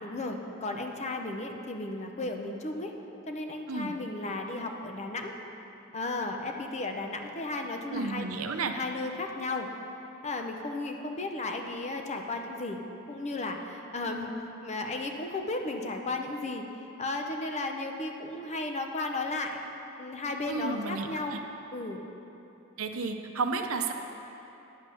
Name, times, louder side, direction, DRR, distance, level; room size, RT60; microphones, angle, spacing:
voice 1, 0.0-2.9 3.3-5.3 5.9-8.2 8.7-9.7 10.2-12.8 13.1-14.3 14.6-16.6 17.0-19.6 20.0-21.3 21.7-22.0, left 2 dB, 35° left, 4 dB, 0.7 m, -34 dB
voice 2, 7.9-8.7 20.5-21.4 22.8-23.9, right 4 dB, 80° right, 5 dB, 0.7 m, -32 dB
10.0 x 5.2 x 6.9 m, 2.9 s
head